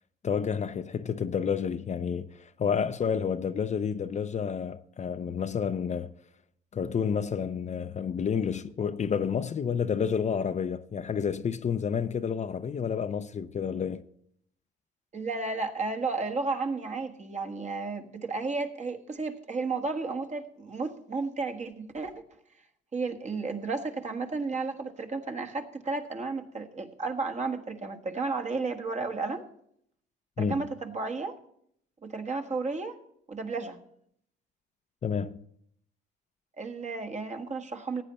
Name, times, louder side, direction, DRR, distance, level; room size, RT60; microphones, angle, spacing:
voice 1, 0.2-6.1 6.7-14.0 30.4-30.7 35.0-35.4, left 7 dB, 35° left, 0.6 m, -30 dB
voice 2, 15.1-22.1 22.9-29.4 30.4-31.3 32.0-33.0 33.3-33.8 36.6-38.0, right 3 dB, 35° right, 1.5 m, -33 dB
15.0 x 9.1 x 4.2 m
supercardioid pair, 85°, 21 cm